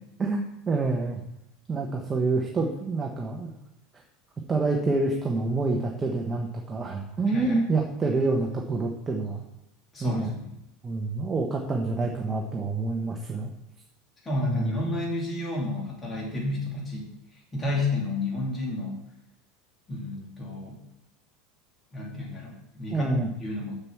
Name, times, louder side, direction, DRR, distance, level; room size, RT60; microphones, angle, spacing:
voice 1, 0.2-1.2 1.7-3.5 4.5-9.4 10.0-10.4 10.8-13.5 14.4-14.8 22.9-23.3, right 3 dB, 15° right, 1 dB, 1.0 m, -27 dB
voice 2, 7.3-7.6 9.9-10.5 14.2-17.1 17.5-18.9 19.9-20.8 21.9-23.8, left 2 dB, 15° left, -3 dB, 2.5 m, -31 dB
6.8 x 6.0 x 7.2 m, 0.85 s
supercardioid pair, 150°, 0 cm